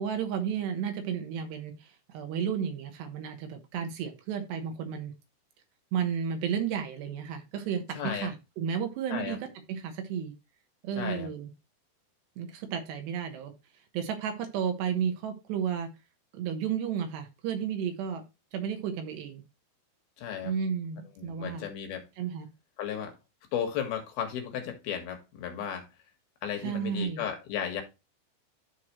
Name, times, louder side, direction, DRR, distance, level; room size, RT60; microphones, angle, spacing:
voice 1, 0.0-5.1 5.9-9.4 9.7-10.3 10.8-11.5 12.4-13.5 13.9-15.9 16.3-18.2 18.5-19.4 20.4-21.6 22.2-22.5 26.6-27.2, right 8 dB, 70° right, 3.1 m, -32 dB
voice 2, 7.9-8.3 9.1-9.4 11.0-11.3 20.2-20.5 21.2-22.1 22.8-23.2 23.5-25.9 26.4-27.8, left 8 dB, 60° left, 3.3 m, -34 dB
12.5 x 4.6 x 3.1 m
omnidirectional pair, 5.4 m